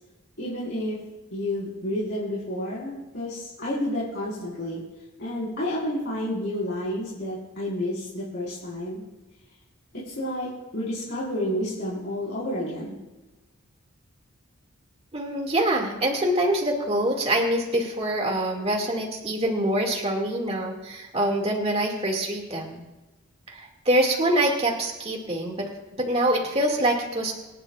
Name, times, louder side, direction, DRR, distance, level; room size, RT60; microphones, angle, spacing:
voice 1, 0.4-1.0 1.3-4.8 5.2-9.0 9.9-13.0, left 1 dB, 50° left, -8 dB, 4.8 m, -30 dB
voice 2, 15.1-22.8 23.5-25.7 26.0-27.3, right 1 dB, 30° right, 1 dB, 2.3 m, -25 dB
26.5 x 10.5 x 2.5 m, 1.1 s
head